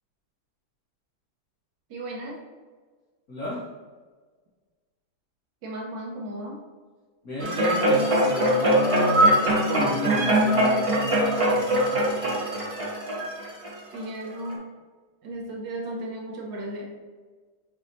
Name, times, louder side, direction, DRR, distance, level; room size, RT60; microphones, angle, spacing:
voice 1, 1.9-2.4 5.6-6.6 13.9-14.7 15.2-16.9, right 1 dB, 70° right, -2 dB, 1.5 m, -35 dB
voice 2, 3.3-3.6 7.2-12.8, left 1 dB, 50° left, -9 dB, 1.4 m, -32 dB
sound 1, 7.4-14.0 14.5-14.6, right 1 dB, 35° right, 0.5 m, -22 dB
7.0 x 2.8 x 2.6 m, 1.4 s
omnidirectional pair, 2.1 m